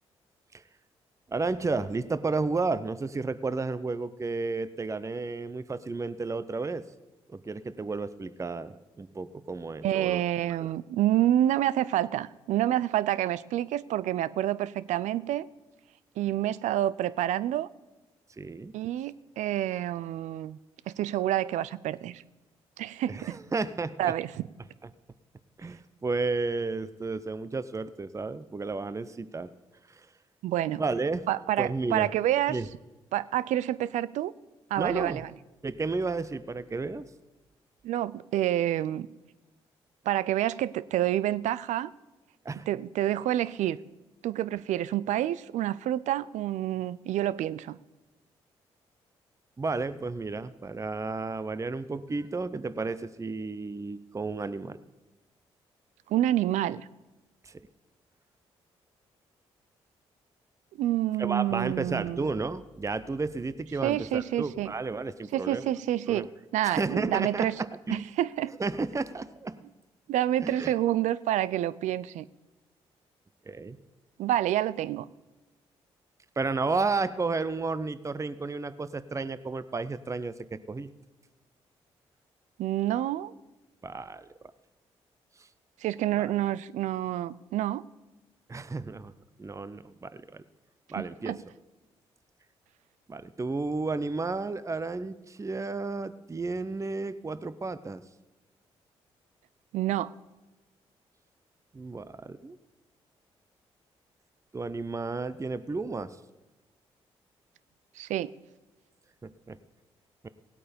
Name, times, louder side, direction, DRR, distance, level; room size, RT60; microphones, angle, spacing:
voice 1, 1.3-6.8 7.3-10.2 10.6-10.7 18.4-18.7 23.1-24.1 25.6-29.5 29.9-30.1 30.8-31.2 31.6-32.1 32.5-32.7 34.8-35.2 35.6-37.1 42.4-42.7 49.6-54.8 57.4-57.6 61.2-65.7 66.1-66.3 66.6-68.1 68.6-69.6 70.4-70.7 73.5-73.8 76.4-80.9 83.8-84.3 86.2-86.3 88.5-89.1 89.4-90.4 90.9-91.4 93.1-98.0 101.7-102.6 104.5-106.2 109.2-109.6 110.2-110.3, right 3 dB, 25° right, 14 dB, 0.7 m, -32 dB
voice 2, 9.8-15.5 16.2-17.7 18.7-20.6 20.9-22.2 22.8-23.4 24.0-24.3 30.4-30.8 31.3-32.6 33.1-34.3 34.7-35.3 37.8-39.1 40.1-41.9 42.7-43.8 44.2-47.8 56.1-56.9 60.8-62.3 63.8-64.7 65.3-66.3 66.5-67.5 67.9-68.5 70.1-72.3 74.2-75.1 82.6-83.3 85.8-87.8 91.0-91.4 99.7-100.1 108.0-108.3, right 13 dB, 75° right, 18 dB, 0.4 m, -28 dB
17.0 x 8.4 x 5.2 m, 1.1 s
hypercardioid pair, 45°, 13 cm